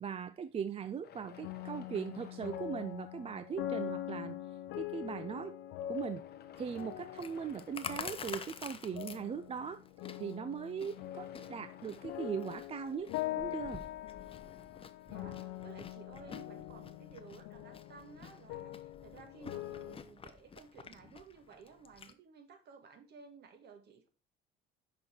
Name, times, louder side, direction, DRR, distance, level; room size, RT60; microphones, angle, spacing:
voice 1, 0.0-4.4 4.7-5.6 5.9-6.2 6.6-9.8 10.2-13.1 13.4-13.8, right 7 dB, 30° right, 0.4 m, -39 dB
sound 1, 1.0-3.7 4.6-4.7 5.7-8.8 10.7-13.7, left 10 dB, 50° left, 0.9 m, -58 dB
sound 2, 1.3-20.0, left 13 dB, 75° left, 0.7 m, -43 dB
Chewing mastication, 6.5-22.1, left 6 dB, 25° left, 0.7 m, -50 dB
voice 2, 15.1-24.1, right 5 dB, 50° right, 1.7 m, -55 dB
6.1 x 4.9 x 4.3 m
supercardioid pair, 80°, 21 cm